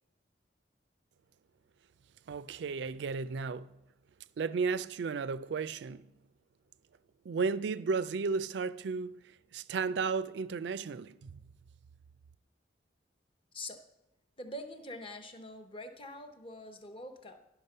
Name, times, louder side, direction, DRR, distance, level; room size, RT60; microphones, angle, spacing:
voice 1, 2.3-3.7 4.4-6.1 7.3-9.1 9.5-11.4, right 5 dB, 70° right, 0.4 m, -33 dB
voice 2, 14.4-17.4, left 1 dB, 30° left, 0.8 m, -44 dB
10.5 x 5.8 x 5.5 m
head